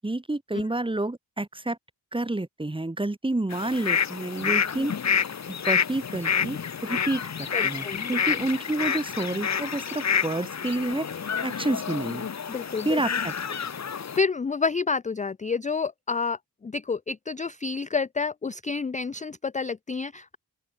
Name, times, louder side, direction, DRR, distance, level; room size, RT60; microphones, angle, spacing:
voice 1, 0.0-1.8 2.1-4.9 5.7-7.2 7.6-11.1 11.4-12.3 12.8-13.3, right 2 dB, 15° right, 1.0 m, -29 dB
sound 1, 3.5-14.2, left 7 dB, 40° left, 0.8 m, -28 dB
voice 2, 7.5-8.1 12.5-13.0 13.8-20.4, left 4 dB, 20° left, 0.4 m, -29 dB
open air
cardioid pair, 60°, 40 cm